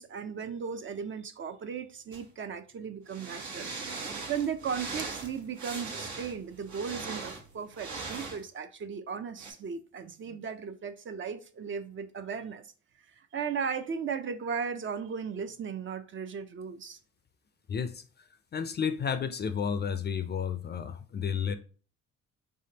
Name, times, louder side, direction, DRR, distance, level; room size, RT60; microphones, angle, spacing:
voice 1, 0.0-3.7 4.1-12.7 13.2-17.0, right 6 dB, 40° right, 0.5 m, -36 dB
sound 1, 2.1-2.2 3.1-8.4 9.4-9.5, right 4 dB, 75° right, 1.2 m, -39 dB
voice 2, 17.7-18.0 18.5-21.5, left 7 dB, 35° left, 0.4 m, -31 dB
3.6 x 3.4 x 2.8 m
cardioid pair, 90°, 30 cm